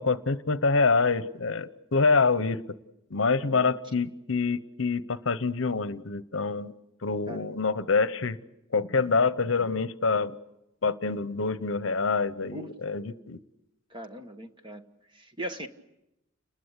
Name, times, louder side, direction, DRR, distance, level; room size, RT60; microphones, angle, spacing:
voice 1, 0.0-2.6 3.1-6.7 7.0-8.4 8.7-10.4 10.8-13.4, left 4 dB, 65° left, 15 dB, 0.8 m, -26 dB
voice 2, 3.4-3.7 7.3-7.6 12.5-12.7 13.9-14.8 15.1-15.7, right 1 dB, 25° right, 7 dB, 1.4 m, -39 dB
29.5 x 20.5 x 8.2 m, 0.89 s
head